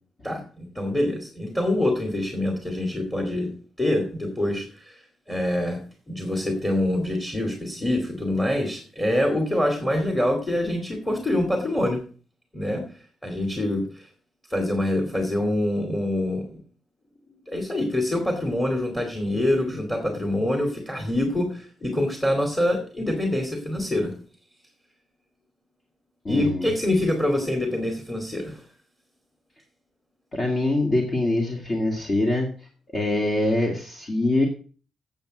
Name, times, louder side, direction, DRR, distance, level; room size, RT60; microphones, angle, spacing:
voice 1, 0.2-3.5 3.8-5.0 5.3-5.8 6.1-12.0 12.5-12.8 13.2-14.1 14.5-16.6 17.5-24.1 26.3-28.6, left 1 dB, 10° left, 2 dB, 2.4 m, -25 dB
voice 2, 26.2-26.7 30.3-34.5, left 2 dB, 35° left, 0 dB, 2.2 m, -24 dB
9.0 x 7.4 x 7.8 m, 0.40 s
cardioid pair, 135°, 0 cm